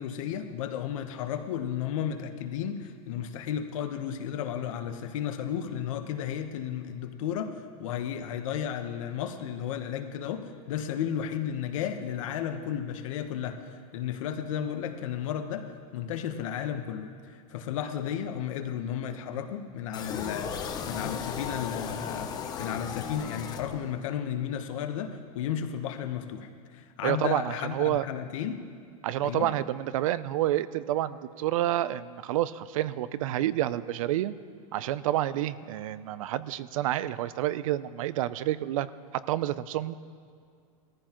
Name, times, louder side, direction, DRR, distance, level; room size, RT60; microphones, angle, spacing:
voice 1, 0.0-20.5 20.9-22.3 22.6-28.6 29.2-29.5, left 9 dB, 65° left, 7 dB, 1.0 m, -33 dB
sound 1, 19.9-24.1, left 7 dB, 20° left, 0.7 m, -36 dB
voice 2, 27.0-28.0 29.0-34.3 34.7-38.9 39.3-40.0, right 13 dB, 65° right, 16 dB, 0.5 m, -29 dB
18.5 x 14.5 x 3.0 m, 2.3 s
supercardioid pair, 155°, 18 cm